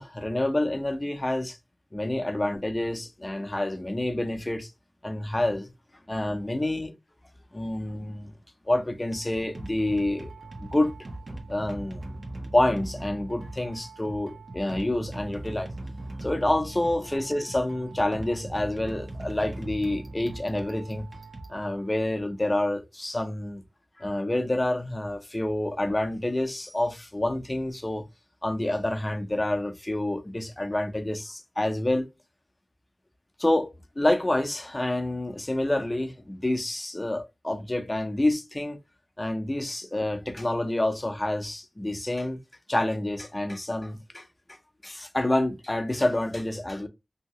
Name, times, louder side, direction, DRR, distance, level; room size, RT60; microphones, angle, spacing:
voice 1, 0.0-1.6 1.9-4.7 5.0-5.7 6.1-6.9 7.5-8.3 8.7-10.3 10.6-10.9 11.5-12.2 12.5-15.7 16.2-21.1 21.5-23.6 24.0-28.1 28.4-32.1 33.4-38.8 39.2-42.4 42.7-44.3 44.8-46.9, left 1 dB, 25° left, 0.6 m, -28 dB
sound 1, 9.0-22.2, right 2 dB, 65° right, 0.8 m, -40 dB
2.8 x 2.8 x 2.8 m
wide cardioid pair, 55°, 0 cm